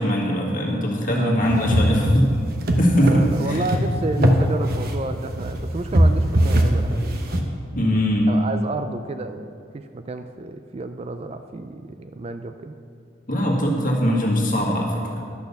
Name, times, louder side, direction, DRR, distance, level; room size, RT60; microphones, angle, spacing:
voice 1, 0.0-2.4 2.8-3.6 4.2-4.3 7.7-8.3 13.3-15.2, equal, 45° left, -1 dB, 1.8 m, -21 dB
voice 2, 1.1-1.8 3.0-7.5 8.3-12.8, right 2 dB, 30° right, 8 dB, 0.3 m, -31 dB
sound 1, 1.4-7.4, right 1 dB, 50° right, 1.0 m, -21 dB
11.5 x 6.5 x 6.9 m, 2.4 s
head